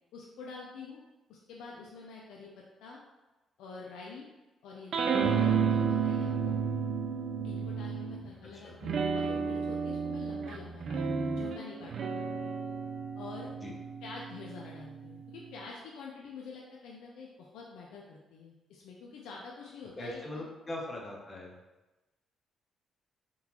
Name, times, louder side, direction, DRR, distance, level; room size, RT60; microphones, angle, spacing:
voice 1, 0.1-1.0 1.3-3.0 3.6-4.3 4.6-6.6 7.4-12.5 13.2-13.5 14.0-20.4, left 4 dB, 85° left, -2 dB, 0.4 m, -47 dB
sound 1, 4.9-8.3 8.8-15.6, right 6 dB, 60° right, 0.3 m, -32 dB
voice 2, 20.0-21.5, left 1 dB, 25° left, -2 dB, 0.8 m, -40 dB
3.7 x 2.4 x 2.9 m, 1.1 s
cardioid pair, 90°, 0 cm